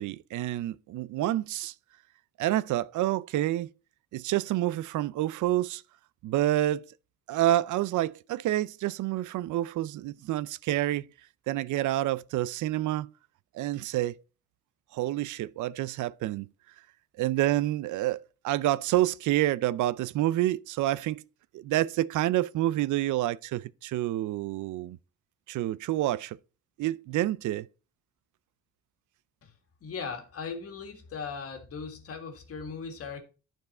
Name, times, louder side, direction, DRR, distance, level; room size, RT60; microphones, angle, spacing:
voice 1, 0.0-1.7 2.4-3.7 4.1-5.8 6.2-6.8 7.3-11.1 11.5-13.1 13.5-14.2 14.9-16.5 17.2-18.2 18.4-21.2 21.5-25.0 25.5-26.4 26.8-27.7, right 14 dB, 80° right, 0.5 m, -28 dB
voice 2, 29.8-33.2, left 5 dB, 50° left, 1.9 m, -38 dB
12.0 x 4.6 x 4.2 m
cardioid pair, 170°, 30 cm